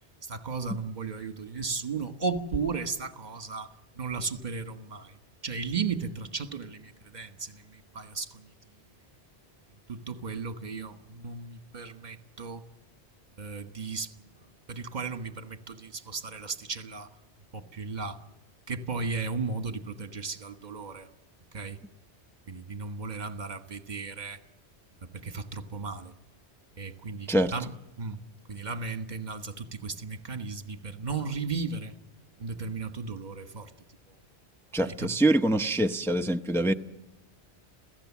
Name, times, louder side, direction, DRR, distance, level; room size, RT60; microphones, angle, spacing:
voice 1, 0.2-3.7 4.0-5.1 5.4-8.5 9.9-12.6 13.4-14.1 14.7-17.1 17.5-18.2 18.7-21.1 21.5-21.8 22.5-24.4 25.1-26.1 26.8-28.2 28.5-31.9 32.4-33.7 34.8-35.1, right 4 dB, 40° right, 1.5 m, -35 dB
voice 2, 34.7-36.7, right 1 dB, 5° left, 0.5 m, -24 dB
27.0 x 16.5 x 7.3 m
omnidirectional pair, 1.1 m